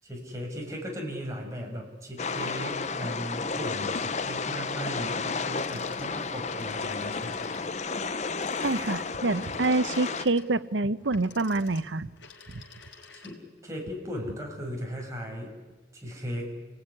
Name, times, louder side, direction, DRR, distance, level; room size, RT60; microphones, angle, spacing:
voice 1, 0.0-7.4 13.1-15.5 15.9-16.5, equal, 15° right, 0 dB, 6.3 m, -37 dB
sound 1, 2.2-10.2, left 4 dB, 40° left, 0.8 m, -32 dB
sound 2, 5.5-13.6, left 5 dB, 85° left, 4.0 m, -51 dB
voice 2, 8.6-12.1 12.5-12.6, right 2 dB, 85° right, 14 dB, 0.9 m, -27 dB
28.5 x 19.5 x 9.9 m, 1.3 s
head